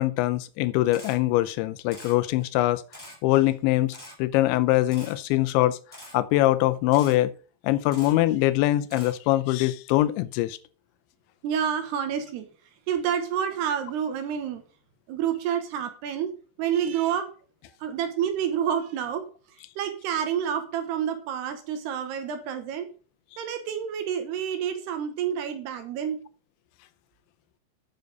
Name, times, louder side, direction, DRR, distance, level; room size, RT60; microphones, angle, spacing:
voice 1, 0.0-2.8 3.2-5.8 6.1-7.3 7.6-10.6, left 16 dB, 85° left, 3.0 m, -23 dB
Camera, 0.9-1.2 1.9-2.1 2.9-3.2 3.9-4.1 4.9-5.1 5.9-6.1 6.9-7.1 7.9-8.1 8.9-9.1, left 1 dB, 5° left, 4.7 m, -44 dB
voice 2, 11.4-12.5 12.9-14.6 15.1-16.3 16.6-17.3 17.8-19.2 19.8-22.9 23.4-26.2, right 8 dB, 75° right, 3.1 m, -28 dB
9.8 x 6.5 x 5.3 m
omnidirectional pair, 5.2 m